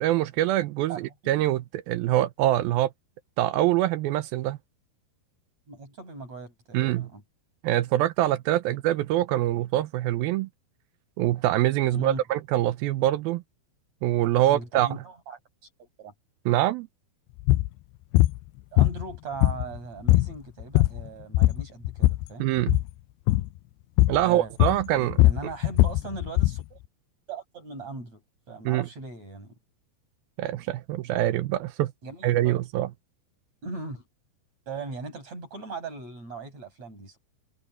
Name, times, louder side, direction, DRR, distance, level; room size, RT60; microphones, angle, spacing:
voice 1, 0.0-2.9 3.4-4.6 6.7-7.1 7.6-10.5 11.2-13.4 14.0-14.9 16.5-16.9 22.4-22.8 24.1-25.2 28.7-28.8 30.4-31.9 32.2-32.9, right 14 dB, 80° right, 2.4 m, -24 dB
voice 2, 0.9-1.3 5.7-7.2 8.7-8.8 11.9-12.2 14.4-15.4 15.8-16.1 18.7-22.5 24.2-24.5 24.9-26.8 27.3-28.2 28.5-29.6 32.0-32.6 33.6-34.0 34.7-37.2, right 4 dB, 40° right, 8.9 m, -39 dB
sound 1, 17.4-17.7 18.1-18.4 18.8-19.8 20.1-20.3 20.6-21.1 21.3-22.3 22.6-22.9 23.3-23.5 24.0-24.2 24.6-26.6, left 17 dB, 90° left, 2.6 m, -20 dB
omnidirectional pair, 4.6 m